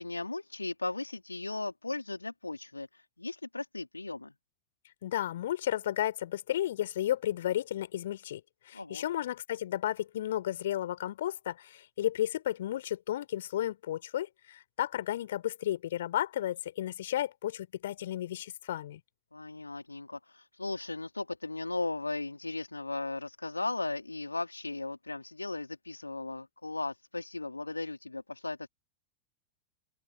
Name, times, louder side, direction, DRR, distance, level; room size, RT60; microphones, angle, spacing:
voice 1, 0.0-4.3 8.7-9.1 19.3-28.7, left 2 dB, 80° left, 3.6 m, -37 dB
voice 2, 5.0-19.0, left 12 dB, 60° left, 4.4 m, -33 dB
open air
figure-of-eight pair, 90°, 0 cm